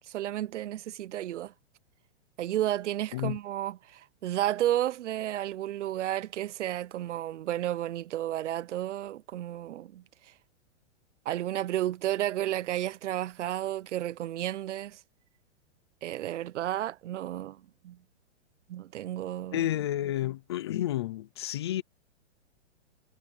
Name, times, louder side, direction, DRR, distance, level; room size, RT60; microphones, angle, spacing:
voice 1, 0.1-1.5 2.4-10.0 11.3-15.0 16.0-18.0 18.7-19.6, right 13 dB, 80° right, 0.7 m, -32 dB
voice 2, 19.5-21.8, left 13 dB, 25° left, 0.4 m, -30 dB
hypercardioid pair, 165°, 35 cm